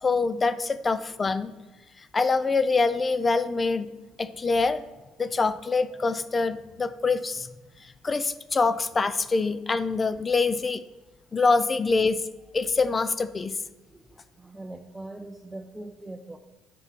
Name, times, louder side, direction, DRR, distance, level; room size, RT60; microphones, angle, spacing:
voice 1, 0.0-1.5 2.1-3.9 4.2-4.8 5.2-7.5 8.0-10.8 11.3-12.2 12.5-13.6, left 4 dB, 30° left, 13 dB, 0.5 m, -25 dB
voice 2, 13.9-16.4, right 2 dB, 10° right, 4 dB, 0.7 m, -42 dB
7.1 x 6.1 x 5.3 m, 1.1 s
supercardioid pair, 75°, 0 cm